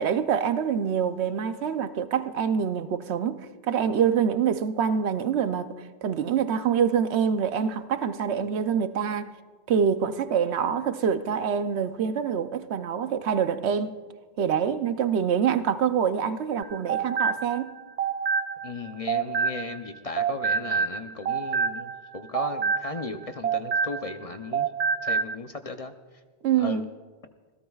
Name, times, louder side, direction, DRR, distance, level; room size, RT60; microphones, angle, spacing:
voice 1, 0.0-5.8 6.0-9.3 9.7-14.0 14.4-17.7 26.4-26.9, right 7 dB, 85° right, 1.0 m, -25 dB
sound 1, 16.6-19.9 20.2-24.2 24.5-25.3, right 6 dB, 55° right, 0.4 m, -27 dB
voice 2, 18.6-24.7 25.0-25.9 26.6-26.8, left 4 dB, 40° left, 0.7 m, -36 dB
26.5 x 16.5 x 2.4 m
omnidirectional pair, 1.1 m